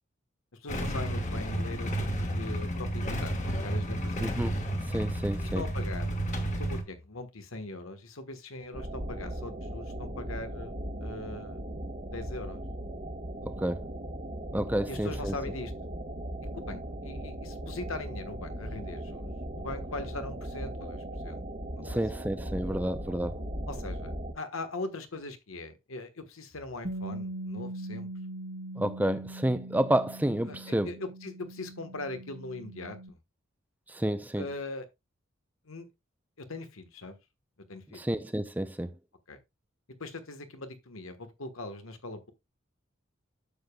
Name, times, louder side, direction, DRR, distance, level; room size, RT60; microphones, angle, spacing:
voice 1, 0.6-2.1 2.4-4.3 5.5-6.3 6.5-11.6 12.1-12.6 14.9-15.7 16.5-19.3 19.5-21.4 21.7-22.0 22.7-22.8 23.7-28.1 30.5-30.6 30.8-33.2 34.4-34.9 35.6-35.9 36.4-37.2 37.7-38.0 39.3-39.4 40.0-42.3, left 2 dB, 90° left, 1.4 m, -40 dB
Motorcycle / Engine starting / Idling, 0.7-6.8, right 1 dB, 35° left, 1.5 m, -31 dB
voice 2, 4.2-5.6 13.5-13.9 14.5-15.3 21.8-23.4 28.8-30.9 33.9-34.5 37.9-38.9, right 1 dB, 10° right, 0.6 m, -30 dB
sound 1, 8.7-24.3, right 1 dB, 35° right, 1.4 m, -38 dB
Bass guitar, 26.8-33.1, right 1 dB, 55° right, 1.4 m, -41 dB
11.5 x 7.0 x 2.3 m
head